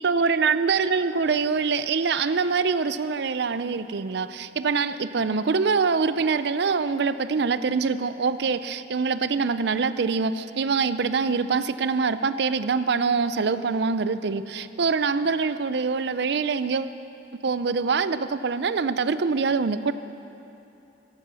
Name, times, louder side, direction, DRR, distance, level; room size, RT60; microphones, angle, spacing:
voice 1, 0.0-16.9 17.4-19.9, right 5 dB, 65° right, 13 dB, 0.5 m, -24 dB
14.0 x 12.0 x 6.2 m, 2.8 s
head